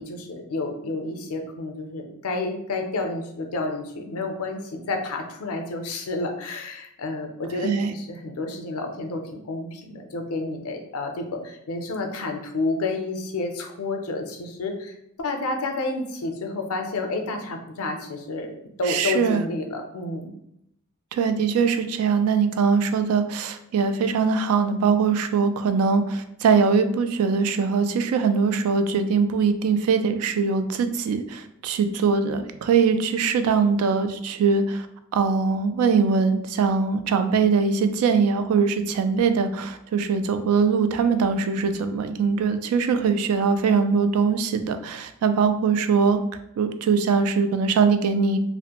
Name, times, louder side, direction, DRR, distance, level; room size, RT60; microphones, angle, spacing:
voice 1, 0.0-20.3, left 2 dB, 90° left, 4 dB, 0.5 m, -30 dB
voice 2, 7.6-7.9 18.9-19.4 21.1-34.9 35.1-46.2 46.6-48.4, right 5 dB, 85° right, 12 dB, 0.3 m, -22 dB
2.4 x 2.0 x 2.8 m, 0.77 s
head